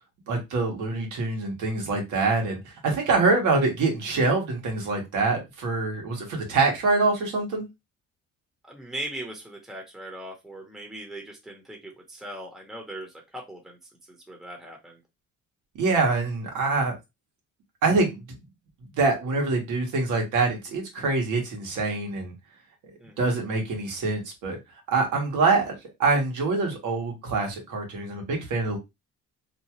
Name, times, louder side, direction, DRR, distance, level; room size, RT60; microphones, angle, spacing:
voice 1, 0.3-7.7 15.8-16.9 17.8-18.2 19.0-22.3 23.2-24.6 24.9-25.7 26.0-28.8, right 3 dB, 80° right, 1.3 m, -25 dB
voice 2, 8.6-13.8 14.1-15.0 23.0-23.4, right 1 dB, ahead, 0.8 m, -39 dB
2.8 x 2.3 x 2.9 m
cardioid pair, 90°, 30 cm